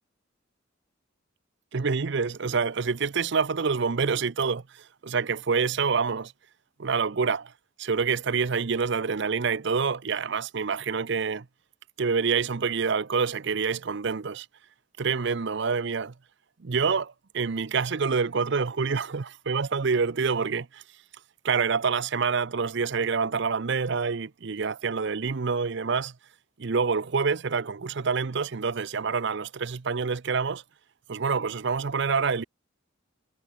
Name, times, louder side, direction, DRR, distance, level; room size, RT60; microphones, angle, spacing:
voice 1, 1.7-6.3 6.8-7.5 7.8-11.5 12.0-14.5 15.0-16.1 16.6-20.8 21.4-26.1 26.6-30.6 31.1-32.4, right 5 dB, 60° right, 0.6 m, -27 dB
head